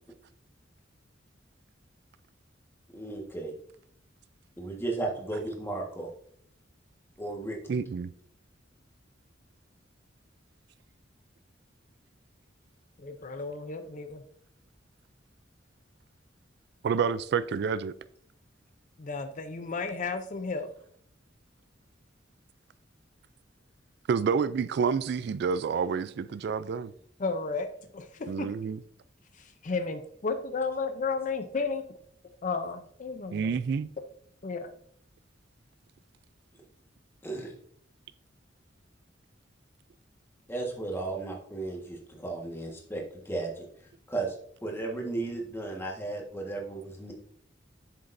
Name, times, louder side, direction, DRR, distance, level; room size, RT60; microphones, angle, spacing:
voice 1, 2.9-3.5 4.6-6.1 7.2-7.8 37.2-37.5 40.5-43.7 44.1-44.4 44.6-47.1, right 2 dB, 15° left, 1.4 m, -35 dB
voice 2, 7.7-8.1 16.8-17.9 24.1-26.9 28.3-28.8 33.3-33.9, right 6 dB, 60° right, 0.3 m, -28 dB
voice 3, 13.0-14.2 19.0-20.7 27.2-27.7 27.9-28.5 29.4-31.9 32.4-33.5 34.4-34.7, left 4 dB, 40° left, 0.5 m, -33 dB
7.6 x 6.9 x 2.6 m
head